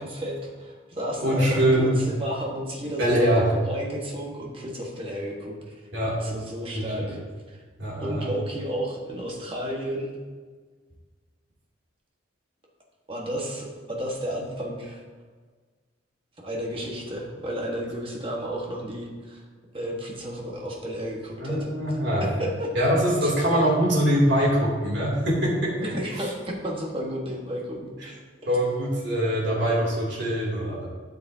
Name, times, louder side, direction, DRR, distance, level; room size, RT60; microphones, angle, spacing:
voice 1, 0.0-5.8 6.2-7.2 7.5-7.6 8.0-10.2 13.1-15.0 16.4-19.4 19.7-21.7 22.2-22.7 23.2-23.3 25.8-27.9, equal, 25° right, -2 dB, 1.4 m, -32 dB
voice 2, 1.2-2.0 3.0-3.5 5.9-6.2 6.7-7.2 7.8-8.3 21.4-22.2 22.7-25.9 28.0-28.1 28.5-30.9, equal, 65° right, -4 dB, 2.8 m, -23 dB
12.5 x 6.9 x 2.8 m, 1.4 s
head